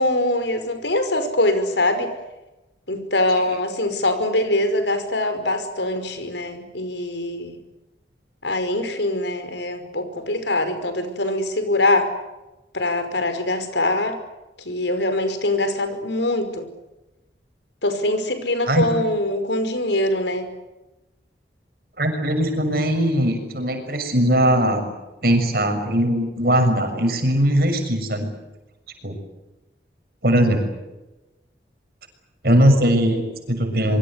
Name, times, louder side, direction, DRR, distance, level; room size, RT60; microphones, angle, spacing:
voice 1, 0.0-2.1 2.9-7.6 8.4-12.1 12.7-14.2 14.6-16.7 17.8-20.5, left 1 dB, 80° left, 9 dB, 5.3 m, -23 dB
voice 2, 22.0-24.9 25.2-28.3 29.0-29.2 30.2-30.8 32.4-34.0, equal, 55° right, 6 dB, 6.6 m, -20 dB
26.5 x 24.0 x 8.3 m, 1.0 s
head